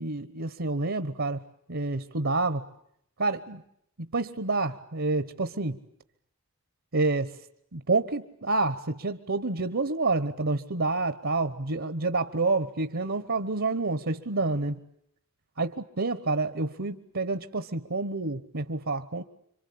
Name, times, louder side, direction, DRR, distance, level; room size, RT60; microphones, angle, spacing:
voice 1, 0.0-1.4 1.7-2.7 3.2-3.6 4.0-5.8 6.9-7.4 7.7-14.8 15.6-19.2, right 3 dB, 65° right, 12 dB, 1.2 m, -28 dB
27.5 x 25.5 x 8.6 m, 0.71 s
head